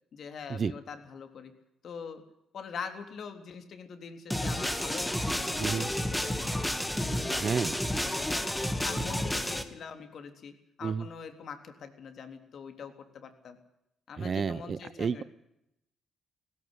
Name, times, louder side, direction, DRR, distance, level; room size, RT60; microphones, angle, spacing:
voice 1, 0.1-1.5 1.8-2.2 2.5-6.5 6.9-7.8 8.1-8.5 8.8-10.5 10.8-13.6 14.1-15.2, left 6 dB, 60° left, 7 dB, 3.5 m, -43 dB
sound 1, 4.3-9.6, left 1 dB, 5° left, 2.4 m, -31 dB
voice 2, 5.6-5.9 7.4-7.8 10.8-11.1 14.2-15.2, right 6 dB, 45° right, 19 dB, 0.9 m, -31 dB
17.0 x 16.5 x 9.9 m, 0.81 s
cardioid pair, 90°, 0 cm